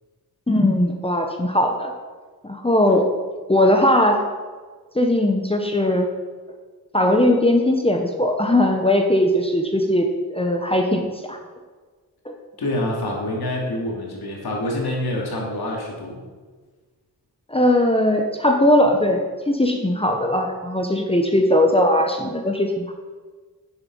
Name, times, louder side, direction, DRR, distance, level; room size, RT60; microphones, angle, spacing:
voice 1, 0.5-1.9 2.4-3.1 3.5-4.2 4.9-6.1 6.9-10.1 10.3-11.4 12.2-12.4 17.5-22.9, left 1 dB, 15° left, 3 dB, 1.2 m, -19 dB
voice 2, 12.6-16.2, left 1 dB, 85° left, -1 dB, 2.9 m, -26 dB
9.6 x 7.9 x 5.6 m, 1.4 s
cardioid pair, 60°, 37 cm